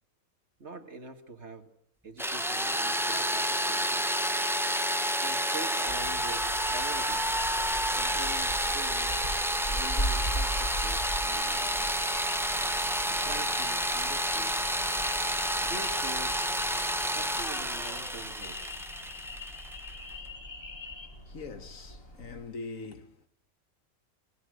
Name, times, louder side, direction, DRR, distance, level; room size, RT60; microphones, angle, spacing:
voice 1, 0.6-1.7 2.0-4.2 5.2-7.4 8.0-9.1 9.7-11.9 13.1-14.7 15.6-16.4 17.0-18.7, right 3 dB, 50° right, 2.5 m, -44 dB
sound 1, 2.2-21.1, left 4 dB, 20° left, 5.4 m, -44 dB
sound 2, 2.2-19.9, equal, ahead, 0.6 m, -30 dB
sound 3, 5.9-22.4, right 1 dB, 40° left, 7.3 m, -40 dB
voice 2, 21.1-23.3, left 3 dB, 65° left, 2.0 m, -42 dB
27.5 x 21.0 x 6.5 m
omnidirectional pair, 1.5 m